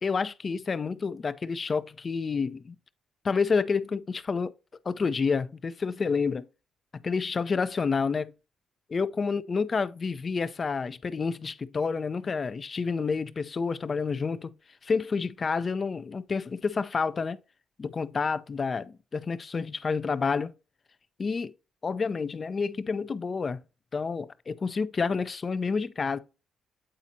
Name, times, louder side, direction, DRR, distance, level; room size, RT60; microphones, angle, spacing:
voice 1, 0.0-2.8 3.2-4.5 4.9-6.5 6.9-8.3 8.9-14.5 14.8-17.4 17.8-20.5 21.2-21.5 21.8-23.6 23.9-26.2, left 5 dB, 40° left, 0.5 m, -29 dB
8.7 x 4.1 x 2.6 m
supercardioid pair, 70°, 0 cm